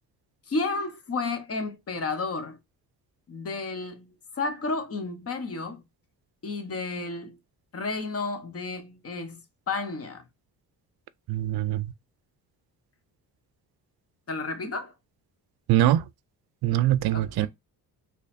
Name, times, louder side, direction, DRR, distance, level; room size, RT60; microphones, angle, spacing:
voice 1, 0.5-2.6 3.3-5.8 6.4-7.4 7.7-9.4 9.7-10.2 14.3-14.9 17.1-17.5, left 3 dB, 35° left, 1.0 m, -32 dB
voice 2, 11.3-11.9 15.7-16.0 16.6-17.5, right 13 dB, 70° right, 0.5 m, -23 dB
3.9 x 3.0 x 2.5 m
cardioid pair, 115°, 40 cm